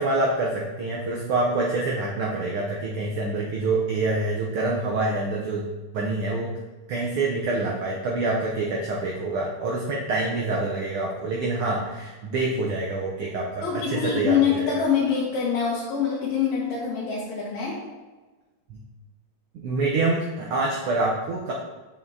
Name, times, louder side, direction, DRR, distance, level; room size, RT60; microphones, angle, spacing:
voice 1, 0.0-5.7 5.9-6.5 6.9-14.7 18.7-18.8 19.5-21.5, right 2 dB, 85° right, -2 dB, 1.2 m, -26 dB
voice 2, 13.6-17.8, left 7 dB, 75° left, -5 dB, 2.3 m, -25 dB
7.0 x 6.1 x 2.7 m, 1.2 s
omnidirectional pair, 3.4 m